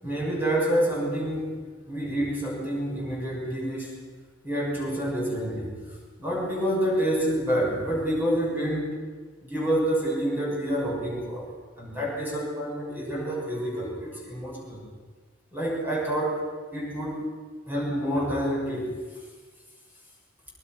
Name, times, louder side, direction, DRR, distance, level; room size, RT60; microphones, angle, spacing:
voice 1, 0.0-1.6 1.9-4.0 4.4-9.0 9.4-11.5 11.8-14.8 15.5-17.3 17.7-19.0, right 1 dB, 10° right, -4 dB, 6.3 m, -28 dB
24.5 x 21.5 x 6.1 m, 1.4 s
head